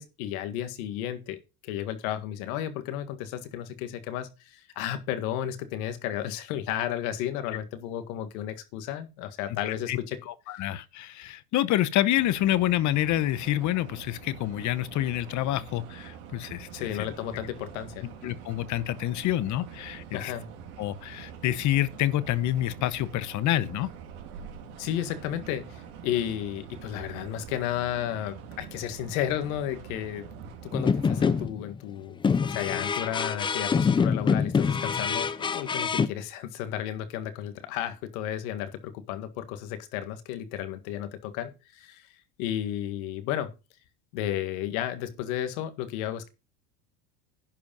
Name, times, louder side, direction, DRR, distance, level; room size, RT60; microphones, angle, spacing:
voice 1, 0.0-10.2 10.6-10.7 16.7-18.1 20.1-20.5 24.8-30.3 30.6-43.5 44.1-46.3, left 11 dB, 70° left, 1.8 m, -33 dB
voice 2, 9.6-10.0 10.3-17.1 18.0-20.3 20.8-23.9, left 13 dB, 40° left, 0.9 m, -28 dB
sound 1, 12.2-31.5, right 7 dB, 75° right, 3.0 m, -45 dB
sound 2, 30.7-31.7 32.2-36.1, left 6 dB, 10° left, 0.4 m, -25 dB
11.0 x 4.9 x 5.4 m
supercardioid pair, 110°, 44 cm